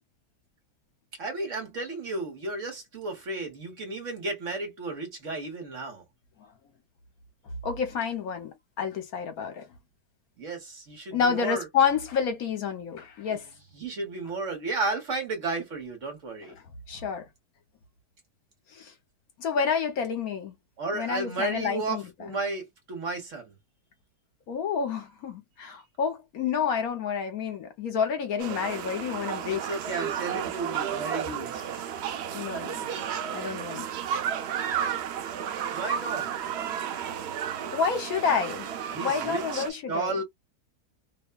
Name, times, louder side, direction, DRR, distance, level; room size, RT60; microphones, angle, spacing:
voice 1, 1.2-6.0 10.4-11.7 13.3-13.4 13.8-16.6 20.8-23.5 29.3-31.8 35.3-36.3 38.9-40.2, right 3 dB, 55° right, 1.4 m, -33 dB
voice 2, 7.6-9.6 11.1-13.5 16.9-17.2 18.7-18.9 19.4-20.5 20.9-22.0 24.5-29.6 32.3-32.9 33.3-33.9 37.7-38.7 39.0-40.2, left 6 dB, 70° left, 1.3 m, -29 dB
sound 1, 28.4-39.7, right 9 dB, 90° right, 0.5 m, -32 dB
3.0 x 2.2 x 2.2 m
omnidirectional pair, 1.7 m